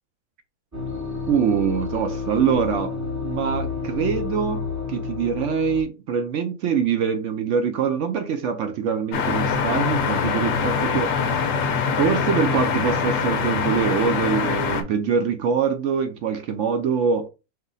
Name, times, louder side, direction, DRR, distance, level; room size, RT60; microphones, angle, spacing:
sound 1, 0.7-5.8, left 5 dB, 15° right, 0.6 m, -30 dB
voice 1, 1.3-3.0 3.2-11.2 12.0-17.3, right 7 dB, 70° right, 0.8 m, -24 dB
sound 2, 9.1-14.8, left 6 dB, 65° left, 1.1 m, -23 dB
5.4 x 2.0 x 3.9 m
omnidirectional pair, 1.5 m